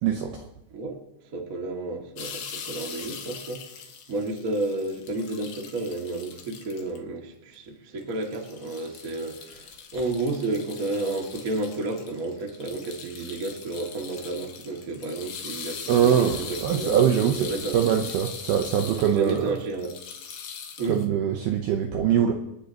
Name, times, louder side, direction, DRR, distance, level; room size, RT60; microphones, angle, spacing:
voice 1, 0.0-0.5 15.9-17.5 17.7-19.6 20.9-22.3, right 9 dB, 80° right, 4 dB, 2.3 m, -23 dB
voice 2, 1.3-3.6 4.1-17.0 17.3-17.8 18.8-19.9 20.8-21.0, right 2 dB, 55° right, 1 dB, 0.9 m, -31 dB
sound 1, 2.2-7.0 7.5-7.6 8.0-21.1, left 6 dB, 65° left, 2.6 m, -41 dB
28.0 x 9.7 x 3.0 m, 0.87 s
omnidirectional pair, 5.5 m